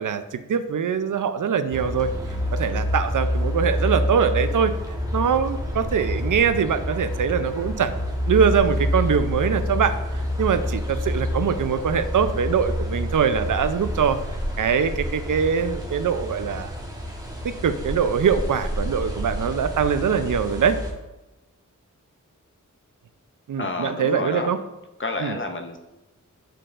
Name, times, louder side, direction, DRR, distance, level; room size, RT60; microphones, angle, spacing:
voice 1, 0.0-2.1 2.5-4.7 5.1-8.0 8.3-10.0 10.4-14.2 14.6-16.7 17.4-20.8 23.5-24.6 25.2-25.3, right 7 dB, 80° right, 10 dB, 0.5 m, -23 dB
sound 1, 1.7-20.9, left 1 dB, 10° right, 1.1 m, -28 dB
voice 2, 23.6-24.5 25.0-25.8, left 3 dB, 40° left, 4 dB, 0.5 m, -29 dB
9.0 x 4.5 x 2.5 m, 1.0 s
wide cardioid pair, 70°, 31 cm